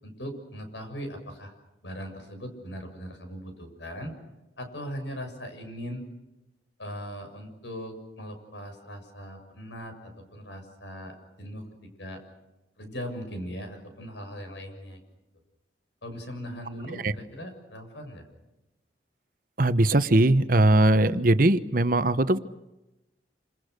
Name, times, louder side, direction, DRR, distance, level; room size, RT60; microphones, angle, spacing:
voice 1, 0.0-1.5 1.8-4.2 4.6-6.0 6.8-12.2 12.8-15.0 16.0-18.2, equal, 85° left, 6 dB, 7.0 m, -39 dB
voice 2, 19.6-22.4, right 1 dB, 50° right, 12 dB, 1.0 m, -20 dB
28.5 x 27.0 x 6.6 m, 0.98 s
head